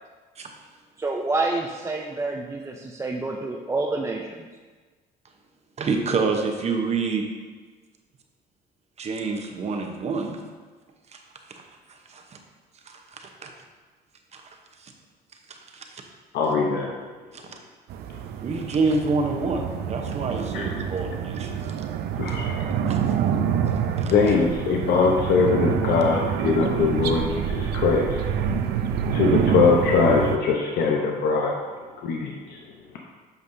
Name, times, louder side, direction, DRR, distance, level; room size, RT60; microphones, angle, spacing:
voice 1, 1.0-4.5, right 3 dB, 15° right, 0 dB, 0.5 m, -28 dB
voice 2, 5.8-7.2 9.0-10.4 11.1-11.2 11.9-12.4 12.9-13.5 14.3-14.4 14.8-14.9 15.5-16.0 17.3-17.6 18.4-21.5 22.9-23.0 24.0-24.1, right 4 dB, 40° right, 3 dB, 0.8 m, -27 dB
voice 3, 16.3-16.9 20.5-20.7 22.2-22.7 24.1-28.2 29.1-31.5 32.0-32.6, left 4 dB, 75° left, 0 dB, 0.8 m, -22 dB
sound 1, 17.9-30.4, right 8 dB, 75° right, 0.5 m, -27 dB
8.2 x 5.3 x 2.6 m, 1.4 s
cardioid pair, 110°, 17 cm